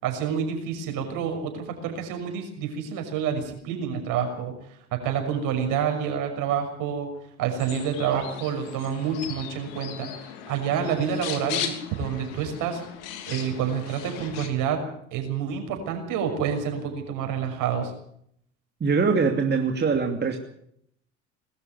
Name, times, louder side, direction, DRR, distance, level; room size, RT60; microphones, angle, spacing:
voice 1, 0.0-4.5 4.9-7.1 7.4-10.1 10.5-12.8 13.3-14.8 15.1-17.9, right 7 dB, 60° right, 5 dB, 6.2 m, -28 dB
sound 1, 7.6-14.5, left 9 dB, 70° left, 3.3 m, -37 dB
voice 2, 18.8-20.4, right 5 dB, 30° right, 4 dB, 2.7 m, -23 dB
21.5 x 13.0 x 9.6 m, 0.69 s
hypercardioid pair, 70°, 36 cm